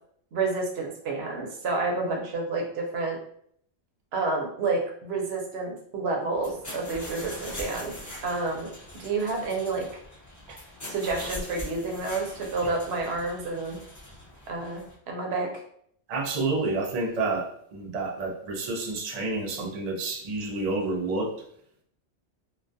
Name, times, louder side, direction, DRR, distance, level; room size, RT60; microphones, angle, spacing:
voice 1, 0.3-3.2 4.1-7.9 8.2-8.7 9.0-9.9 10.9-13.8 14.5-15.5, right 3 dB, 75° right, 1 dB, 0.8 m, -29 dB
sound 1, 6.3-14.9, left 1 dB, 20° left, 0.5 m, -42 dB
voice 2, 16.1-21.3, right 3 dB, 55° right, 0 dB, 0.5 m, -29 dB
2.2 x 2.2 x 2.5 m, 0.66 s
omnidirectional pair, 1.1 m